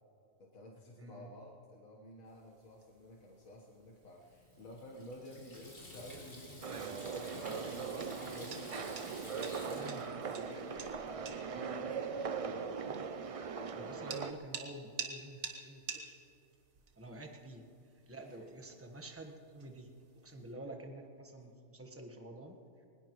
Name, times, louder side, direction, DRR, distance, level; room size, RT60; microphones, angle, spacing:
voice 1, 0.4-8.8 9.6-12.5 18.3-18.4 18.8-18.9 20.5-20.8, left 1 dB, 85° left, -2 dB, 1.8 m, -52 dB
sound 1, 2.3-20.5, right 5 dB, 85° right, 1.7 m, -51 dB
Water tap faucet / Sink (filling or washing), 4.2-11.0, left 1 dB, 35° left, 4.2 m, -52 dB
sound 2, 6.6-14.3, right 5 dB, 60° right, 0.3 m, -40 dB
voice 2, 13.7-16.1 17.0-17.6 18.1-22.5, right 1 dB, 10° right, 3 dB, 1.2 m, -49 dB
22.5 x 20.0 x 3.1 m, 2.6 s
omnidirectional pair, 1.4 m